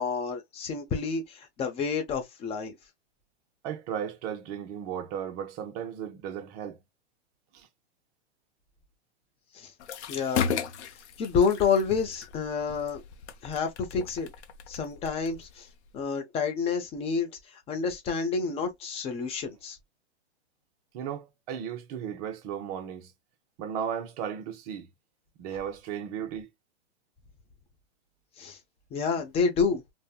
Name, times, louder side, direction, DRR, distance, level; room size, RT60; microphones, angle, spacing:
voice 1, 0.0-2.7 9.5-9.7 10.1-10.4 11.2-13.0 13.4-14.3 14.7-15.7 15.9-17.3 17.7-19.8 28.4-28.6 28.9-29.8, left 5 dB, 15° left, 0.6 m, -29 dB
voice 2, 3.6-6.8 7.5-7.7 20.9-23.1 23.6-24.9 25.4-26.5, right 8 dB, 35° right, 0.6 m, -35 dB
sound 1, 9.8-16.0, left 7 dB, 70° left, 0.7 m, -36 dB
3.2 x 2.1 x 2.2 m
hypercardioid pair, 135°, 35 cm